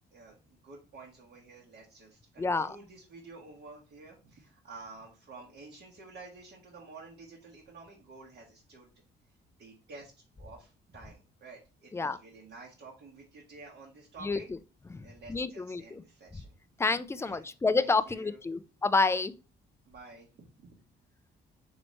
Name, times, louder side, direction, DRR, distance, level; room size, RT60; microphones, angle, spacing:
voice 1, 0.1-8.9 9.6-10.1 10.4-14.5 15.0-16.6 17.2-18.4 19.9-20.3 20.6-20.8, right 3 dB, 60° right, 1.2 m, -51 dB
voice 2, 2.4-2.7 11.9-12.2 14.2-14.4 14.9-16.0 16.8-19.3, left 3 dB, 15° left, 0.3 m, -29 dB
4.1 x 3.0 x 3.1 m
cardioid pair, 90°, 20 cm